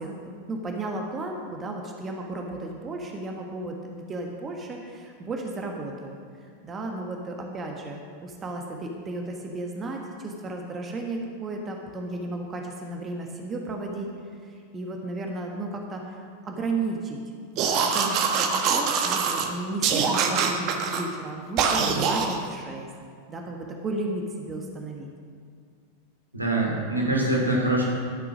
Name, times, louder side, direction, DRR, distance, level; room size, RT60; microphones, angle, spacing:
voice 1, 0.0-6.2 6.4-14.1 14.4-17.2 17.9-22.9 23.3-25.1, right 2 dB, 20° right, 1 dB, 1.5 m, -34 dB
sound 1, 17.6-19.5 19.8-21.0 21.6-22.4, right 6 dB, 40° right, 1.3 m, -24 dB
voice 2, 26.3-27.8, right 1 dB, 85° right, -3 dB, 3.1 m, -24 dB
13.0 x 7.8 x 6.2 m, 2.1 s
figure-of-eight pair, 90°, 0 cm